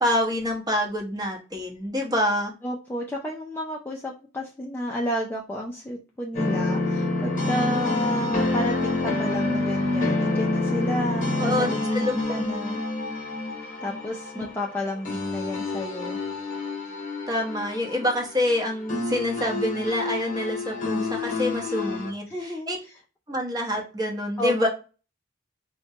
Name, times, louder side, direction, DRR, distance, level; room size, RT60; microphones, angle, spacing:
voice 1, 0.0-2.5 11.4-12.5 14.4-14.5 17.3-22.8 23.3-24.7, left 1 dB, 20° right, 0 dB, 0.8 m, -27 dB
voice 2, 2.6-12.8 13.8-16.2 22.3-22.7 24.4-24.7, equal, 10° left, -2 dB, 0.3 m, -31 dB
this is something i made a long time ago, 6.3-22.1, left 2 dB, 45° left, 0.9 m, -28 dB
4.0 x 2.2 x 2.7 m, 0.33 s
head